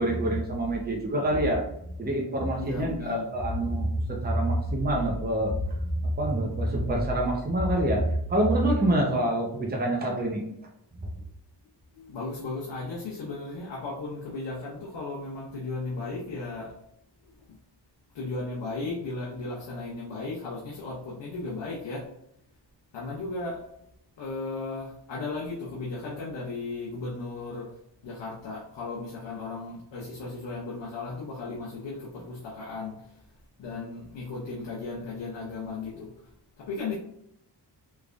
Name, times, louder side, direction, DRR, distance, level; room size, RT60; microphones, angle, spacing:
voice 1, 0.0-1.6 2.0-8.0 8.3-10.4 11.0-11.1, right 1 dB, 20° right, 0.8 m, -26 dB
voice 2, 2.6-3.4 11.9-16.8 17.2-17.6 18.1-22.1 22.9-23.7 24.2-27.7 28.0-33.2 33.6-37.0, left 3 dB, 90° left, 0.8 m, -36 dB
3.3 x 3.3 x 2.5 m
cardioid pair, 70°, 42 cm